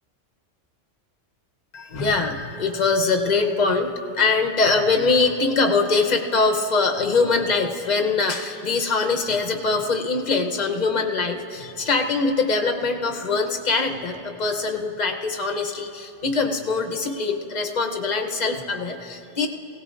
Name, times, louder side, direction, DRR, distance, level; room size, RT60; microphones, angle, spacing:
voice 1, 1.7-19.5, left 4 dB, 40° left, 4 dB, 0.8 m, -23 dB
18.0 x 17.0 x 2.5 m, 2.6 s
omnidirectional pair, 1.3 m